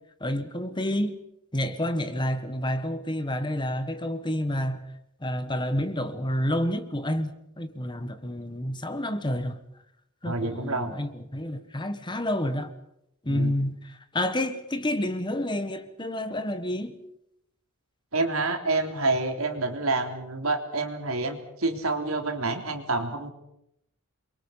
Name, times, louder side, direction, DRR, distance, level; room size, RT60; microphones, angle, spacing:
voice 1, 0.2-1.2 1.5-4.9 5.2-9.6 10.2-12.7 13.2-17.0, left 1 dB, 20° left, 1.5 m, -29 dB
voice 2, 10.2-10.9 13.3-13.5 18.1-23.3, right 3 dB, 75° right, 3.4 m, -28 dB
28.5 x 23.5 x 5.8 m
head